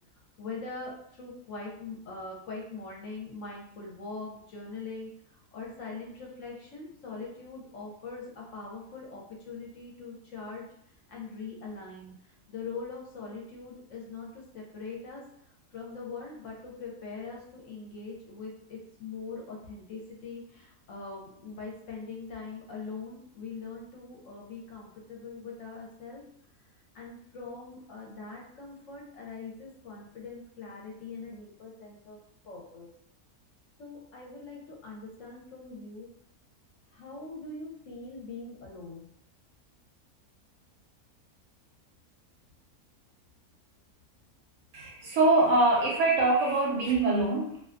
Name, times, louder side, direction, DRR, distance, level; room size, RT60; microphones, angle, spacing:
voice 1, 0.4-5.1 5.5-10.7 11.1-15.2 15.7-26.2 26.9-32.2 32.4-32.9 33.8-36.1 36.9-39.1, left 4 dB, 65° left, -2 dB, 0.9 m, -42 dB
voice 2, 44.7-47.6, right 2 dB, 65° right, -3 dB, 0.9 m, -24 dB
2.5 x 2.2 x 2.4 m, 0.70 s
omnidirectional pair, 1.6 m